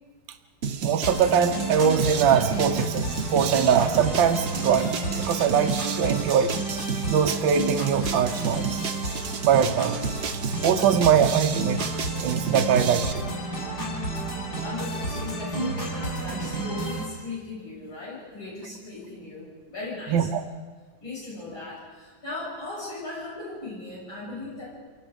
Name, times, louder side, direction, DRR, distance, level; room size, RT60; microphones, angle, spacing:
sound 1, 0.6-13.1, right 6 dB, 55° right, 0.7 m, -32 dB
voice 1, 0.8-6.5 7.0-8.8 9.4-10.0 10.6-11.8 12.2-13.4 20.1-20.4, right 7 dB, 75° right, 6 dB, 1.6 m, -22 dB
sound 2, 1.0-17.0, right 2 dB, 50° left, 7.4 m, -31 dB
voice 2, 14.5-20.3 21.0-24.7, left 2 dB, 80° left, -7 dB, 7.8 m, -37 dB
28.5 x 19.0 x 5.1 m, 1.5 s
omnidirectional pair, 2.2 m